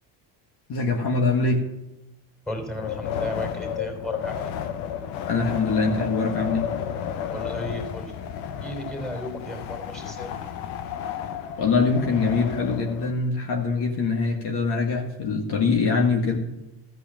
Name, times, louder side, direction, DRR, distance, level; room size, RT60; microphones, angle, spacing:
voice 1, 0.7-1.7 5.3-6.7 11.6-16.4, left 4 dB, 55° left, 2 dB, 1.8 m, -23 dB
voice 2, 2.5-4.5 7.3-8.2 8.6-10.3, left 1 dB, ahead, 2 dB, 3.4 m, -34 dB
Wind, 2.7-13.1, left 8 dB, 90° left, 1.0 m, -32 dB
14.5 x 4.9 x 7.4 m, 0.92 s
supercardioid pair, 85°, 47 cm